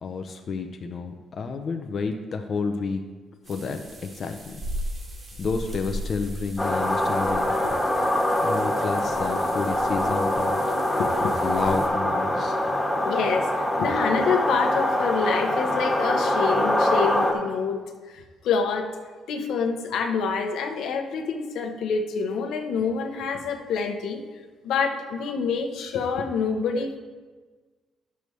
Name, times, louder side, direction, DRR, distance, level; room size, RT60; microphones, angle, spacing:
voice 1, 0.0-3.0 3.5-4.6 5.4-7.5 8.4-10.6 11.4-12.6, left 4 dB, 50° left, 5 dB, 0.6 m, -30 dB
sound 1, 3.4-11.9, equal, 35° right, 2.4 m, -38 dB
sound 2, 6.6-17.3, left 1 dB, 10° left, 1.4 m, -24 dB
voice 2, 13.0-19.0 19.3-24.2 24.6-27.0, left 5 dB, 80° left, 4 dB, 0.9 m, -27 dB
10.5 x 6.8 x 3.2 m, 1.4 s
cardioid pair, 90°, 0 cm